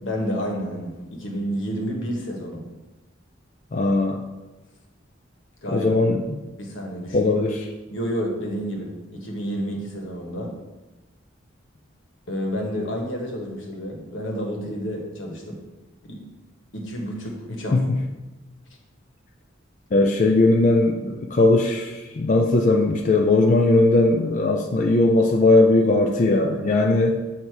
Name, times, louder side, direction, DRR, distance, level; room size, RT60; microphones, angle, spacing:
voice 1, 0.0-2.6 5.6-5.9 6.6-7.3 7.9-10.5 12.3-15.6 16.0-16.2 16.7-17.8, equal, 85° left, 0 dB, 1.3 m, -30 dB
voice 2, 3.7-4.2 5.7-6.4 7.1-7.6 17.7-17.8 19.9-27.2, left 2 dB, 40° left, 2 dB, 0.4 m, -19 dB
8.2 x 2.8 x 4.6 m, 1.1 s
head